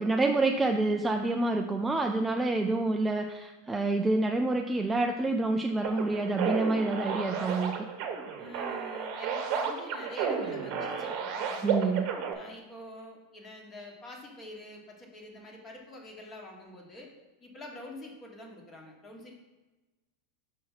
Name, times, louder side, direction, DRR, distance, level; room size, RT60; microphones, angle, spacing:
voice 1, 0.0-7.9 11.6-12.1, right 2 dB, 10° right, 4 dB, 0.3 m, -28 dB
sound 1, 5.8-12.3, right 6 dB, 40° right, 0.9 m, -32 dB
voice 2, 8.4-11.9 12.3-17.1 17.4-19.3, left 1 dB, 20° left, 1 dB, 1.3 m, -46 dB
6.0 x 4.6 x 5.6 m, 1.1 s
supercardioid pair, 155°, 0 cm